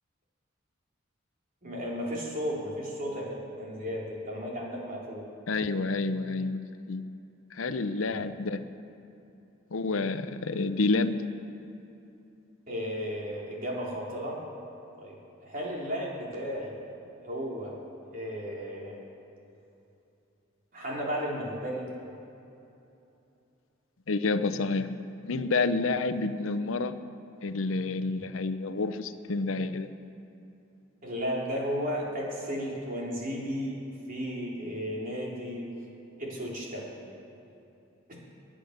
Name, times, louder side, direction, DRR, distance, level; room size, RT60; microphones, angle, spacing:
voice 1, 1.6-5.2 12.7-14.4 15.0-16.7 17.2-17.8 18.0-19.0 20.7-21.8 31.0-33.8 34.1-35.6 36.2-36.9 38.1-38.2, equal, 40° right, -4 dB, 3.4 m, -34 dB
voice 2, 5.5-6.6 6.9-7.0 7.5-8.6 9.7-11.2 24.1-24.9 25.2-27.0 27.4-29.9, left 3 dB, 75° left, 11 dB, 0.7 m, -29 dB
21.0 x 10.0 x 6.6 m, 2.9 s
head